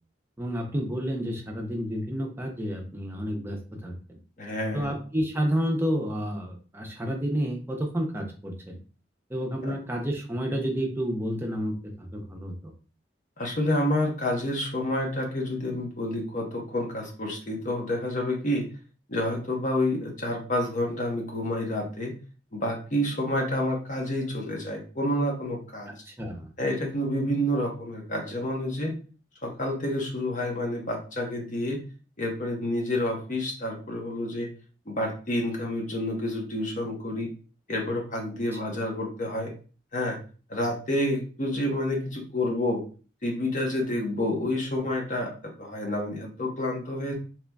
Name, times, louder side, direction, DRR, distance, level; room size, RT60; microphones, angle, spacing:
voice 1, 0.4-4.2 4.7-8.8 9.3-12.7 25.9-26.5, equal, 15° right, 1 dB, 0.6 m, -30 dB
voice 2, 4.4-4.9 9.6-9.8 13.4-18.6 19.1-22.1 22.5-25.9 26.6-28.9 29.4-31.8 32.2-34.5 34.9-37.3 37.7-39.5 39.9-40.2 40.5-42.8 43.2-47.1, left 1 dB, 45° left, 1 dB, 0.9 m, -29 dB
3.8 x 3.0 x 2.2 m, 0.37 s
head